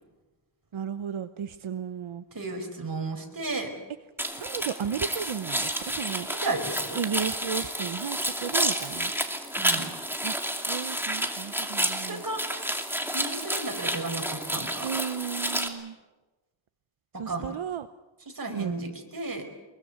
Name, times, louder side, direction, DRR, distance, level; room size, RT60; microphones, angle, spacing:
voice 1, 0.7-2.2 4.4-6.3 6.9-9.1 10.2-10.4 10.7-12.2 14.8-16.0 17.1-17.9 18.5-18.7, right 8 dB, 85° right, 10 dB, 0.9 m, -34 dB
voice 2, 2.3-3.7 6.3-7.0 9.6-9.9 12.1-12.4 13.1-14.9 17.1-17.5 18.3-19.4, right 2 dB, 45° right, 4 dB, 4.8 m, -33 dB
sound 1, 4.2-15.7, right 1 dB, 5° right, 2.6 m, -30 dB
24.5 x 22.0 x 8.0 m, 1.1 s
wide cardioid pair, 100°, 47 cm